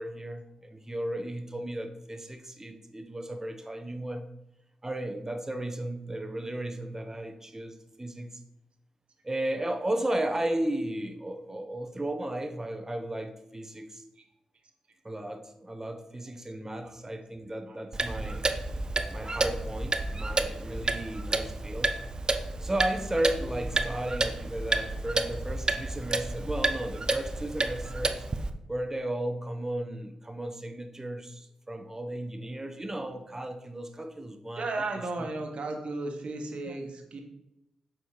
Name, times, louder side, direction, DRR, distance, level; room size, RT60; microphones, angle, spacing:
voice 1, 0.0-4.3 4.8-8.4 9.2-14.0 15.0-18.4 19.1-21.9 22.6-28.2 28.7-34.7 35.2-35.3 36.6-36.8, right 1 dB, 20° right, 7 dB, 1.2 m, -34 dB
Clock, 17.9-28.5, right 2 dB, 40° right, 0.8 m, -30 dB
voice 2, 34.5-37.2, right 2 dB, 60° right, 3 dB, 1.5 m, -34 dB
7.0 x 4.4 x 5.0 m, 0.85 s
supercardioid pair, 40°, 2 cm